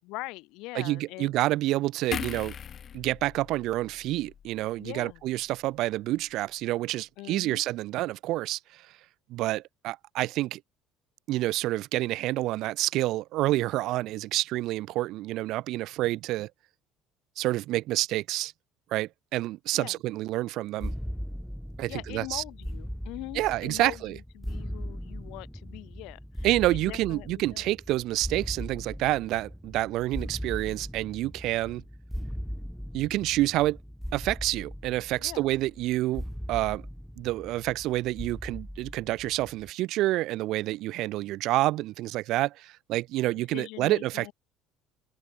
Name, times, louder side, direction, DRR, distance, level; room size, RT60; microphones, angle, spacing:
voice 1, 0.1-1.3 4.8-5.2 7.2-7.6 19.7-20.0 21.9-26.5 26.8-27.7 35.2-35.5 43.5-44.3, left 23 dB, 70° left, 4.5 m, -42 dB
voice 2, 0.7-2.6 2.9-8.8 9.3-10.6 11.3-16.5 17.4-18.5 18.9-20.9 21.8-22.4 23.3-24.2 26.4-31.8 32.9-33.8 34.1-36.2 36.5-36.8 37.2-44.3, right 16 dB, 55° right, 2.3 m, -28 dB
sound 1, 2.1-5.5 5.8-6.0, left 8 dB, 30° left, 4.4 m, -40 dB
sound 2, 20.8-39.7, equal, ahead, 0.9 m, -39 dB
open air
cardioid pair, 170°, 0 cm